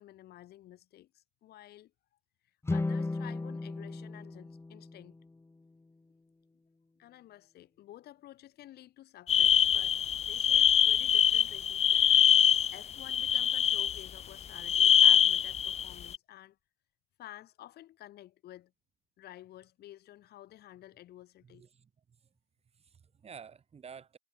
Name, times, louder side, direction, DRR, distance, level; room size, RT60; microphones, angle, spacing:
voice 1, 0.0-1.9 2.7-5.2 7.0-16.6 17.2-18.7 19.2-21.6, left 14 dB, 70° left, 6.9 m, -52 dB
sound 1, 2.6-5.9, left 3 dB, 15° left, 2.4 m, -36 dB
sound 2, 9.3-14.2 14.6-16.2, left 9 dB, 40° left, 0.6 m, -24 dB
voice 2, 21.4-21.9 22.7-24.2, right 6 dB, 35° right, 4.1 m, -50 dB
cardioid pair, 110°, 17 cm